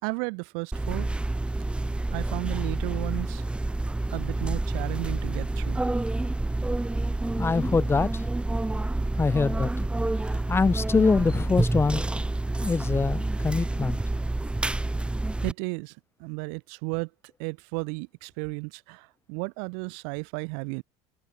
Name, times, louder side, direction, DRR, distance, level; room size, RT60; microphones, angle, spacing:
voice 1, 0.0-1.1 2.1-3.4 4.1-5.8 15.4-17.1 17.4-20.8, right 40 dB or more, 80° right, 3.2 m, -33 dB
sound 1, 0.7-15.5, right 2 dB, 10° right, 1.9 m, -28 dB
voice 2, 7.4-8.3 9.2-9.9 10.5-12.1 12.6-14.0, left 4 dB, 20° left, 2.2 m, -24 dB
cardioid pair, 120°, 13 cm